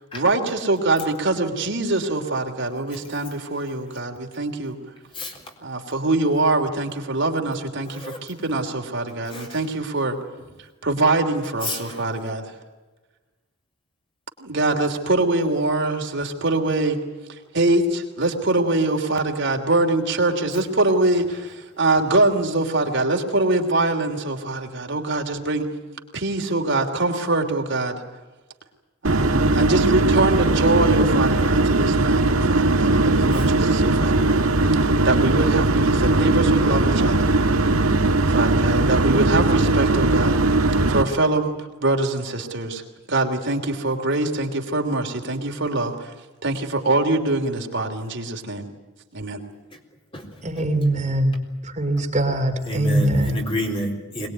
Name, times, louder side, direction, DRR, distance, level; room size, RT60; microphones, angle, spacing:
voice 1, 0.1-4.8 5.6-10.2 10.6-12.5 14.4-17.0 17.3-25.7 26.1-28.0 29.0-34.4 34.7-37.4 38.2-40.4 40.9-41.5 41.8-42.8 43.1-46.1 46.4-48.7 49.1-49.4, right 2 dB, 55° right, 3 dB, 3.1 m, -23 dB
voice 2, 5.1-5.5 7.9-8.2 9.3-9.7 11.6-12.0 33.3-33.5 49.7-49.8 50.1-50.6 52.6-54.3, equal, 25° left, 2 dB, 3.8 m, -30 dB
sound 1, 29.0-41.0, right 2 dB, 85° right, 1.6 m, -19 dB
voice 3, 50.4-51.3 51.8-53.4, right 1 dB, 35° right, 4 dB, 2.7 m, -22 dB
23.0 x 20.5 x 9.4 m, 1.2 s
head